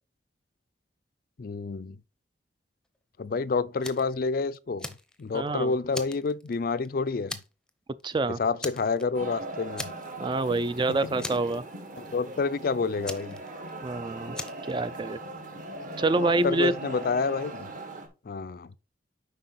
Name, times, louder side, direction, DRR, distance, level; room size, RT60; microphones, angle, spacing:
voice 1, 1.4-2.0 3.2-4.9 5.2-7.4 8.4-9.9 10.9-11.1 12.0-13.4 16.2-17.7 18.3-18.7, left 4 dB, 50° left, 0.4 m, -29 dB
Fire, 3.8-4.1 4.5-5.5 5.9-6.9 7.3-7.7 8.0-8.1 8.6-9.3 9.8-10.3 10.6-10.7 11.2-12.0 13.1-13.9 14.3-14.7, left 2 dB, 5° left, 0.7 m, -38 dB
voice 2, 5.3-5.7 8.0-8.4 10.2-11.6 13.8-14.4 14.7-15.2 16.0-16.7, right 2 dB, 25° right, 0.3 m, -26 dB
sound 1, 9.1-18.1, right 2 dB, 45° right, 1.7 m, -40 dB
7.7 x 5.3 x 4.2 m
head